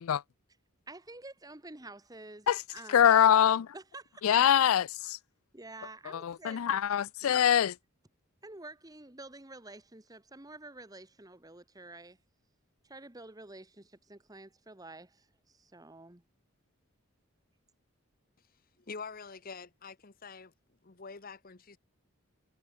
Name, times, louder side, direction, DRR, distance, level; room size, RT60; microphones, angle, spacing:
voice 1, 0.9-3.1 3.7-4.4 5.5-6.6 7.2-7.4 8.4-12.2 12.8-16.2, right 2 dB, 15° right, 1.3 m, -49 dB
voice 2, 2.9-3.7 4.2-5.2 6.1-7.7, left 9 dB, 85° left, 0.4 m, -24 dB
voice 3, 18.9-20.5 20.8-21.8, left 5 dB, 45° left, 1.0 m, -45 dB
head